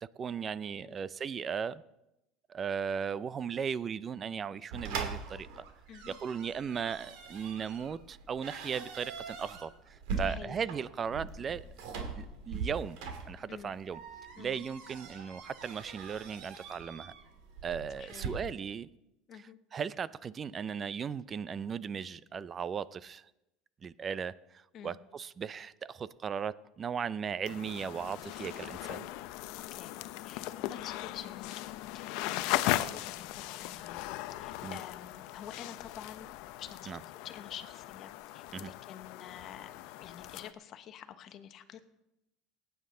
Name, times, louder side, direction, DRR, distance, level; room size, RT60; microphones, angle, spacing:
voice 1, 0.2-1.8 2.5-5.6 6.1-9.7 10.2-11.6 12.1-13.0 13.3-14.0 14.4-17.1 17.6-18.9 19.7-23.2 23.8-29.1 34.6-34.8 36.9-37.0 38.5-38.7, right 7 dB, 30° right, 0.4 m, -37 dB
sound 1, 4.7-18.3, right 5 dB, 75° right, 2.3 m, -42 dB
voice 2, 10.2-10.7 13.5-13.8 14.4-14.6 17.9-18.4 19.3-19.6 24.7-25.0 29.7-29.9 30.2-31.6 31.9-34.0 34.4-36.3 36.6-41.9, left 9 dB, 45° left, 1.0 m, -48 dB
sound 2, 27.5-40.5, left 16 dB, 70° left, 0.5 m, -38 dB
18.5 x 9.5 x 3.8 m
supercardioid pair, 120°, 0 cm